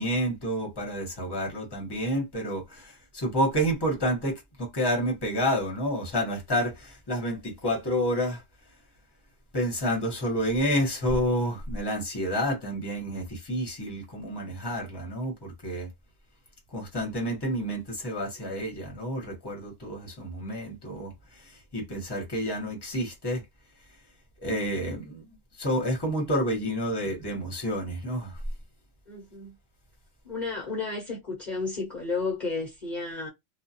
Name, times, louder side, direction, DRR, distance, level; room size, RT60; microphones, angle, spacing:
voice 1, 0.0-8.4 9.5-15.9 16.7-23.4 24.4-28.4, equal, 20° left, 1.1 m, -29 dB
voice 2, 29.1-29.5 30.2-33.3, left 4 dB, 40° left, 1.0 m, -32 dB
2.4 x 2.3 x 2.8 m
omnidirectional pair, 1.2 m